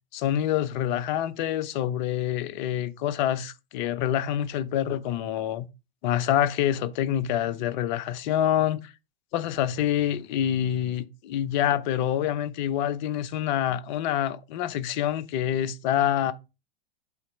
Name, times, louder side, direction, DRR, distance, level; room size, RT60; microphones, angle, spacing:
voice 1, 0.1-5.7 6.0-8.9 9.3-16.3, left 11 dB, 50° left, 0.7 m, -26 dB
8.1 x 2.9 x 4.6 m
hypercardioid pair, 100°, 29 cm